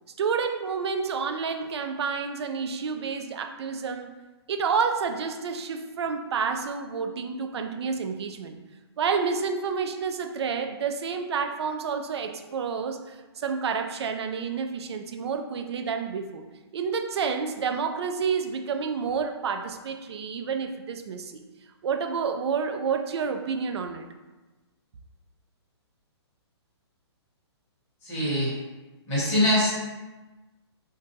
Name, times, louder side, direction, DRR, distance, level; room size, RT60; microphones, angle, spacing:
voice 1, 0.2-4.2 4.5-8.6 9.0-16.5 16.7-21.4 21.8-24.1, right 5 dB, 70° right, 6 dB, 0.4 m, -29 dB
voice 2, 28.0-28.5 29.1-29.7, left 1 dB, 15° left, -8 dB, 1.0 m, -23 dB
2.6 x 2.3 x 3.8 m, 1.2 s
hypercardioid pair, 170°, 14 cm